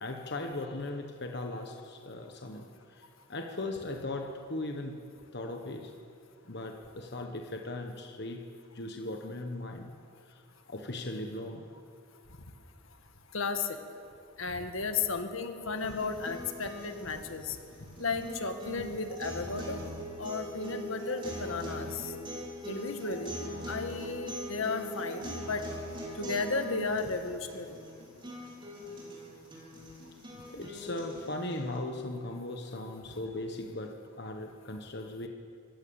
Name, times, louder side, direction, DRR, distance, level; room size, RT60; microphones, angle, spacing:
voice 1, 0.0-5.0 5.3-5.9 6.4-9.9 10.3-10.4 10.7-11.6 30.5-35.3, left 2 dB, 50° left, 3 dB, 1.3 m, -38 dB
voice 2, 13.3-13.8 14.4-17.6 18.0-19.8 20.2-22.1 22.7-25.6 26.2-27.8, left 4 dB, 75° left, 7 dB, 1.7 m, -34 dB
sound 1, 15.8-31.8, equal, 25° right, 5.1 m, -42 dB
25.5 x 15.5 x 7.1 m, 2.4 s
head